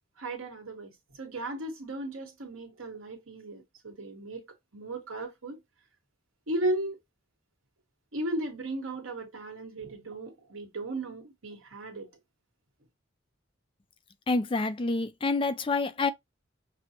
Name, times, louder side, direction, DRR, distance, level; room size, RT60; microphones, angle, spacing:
voice 1, 0.2-0.9 1.2-4.5 4.7-5.6 6.5-7.0 8.1-12.1, right 1 dB, 85° right, 1.3 m, -35 dB
voice 2, 14.3-16.1, left 3 dB, 25° left, 0.4 m, -27 dB
6.0 x 2.1 x 2.8 m
head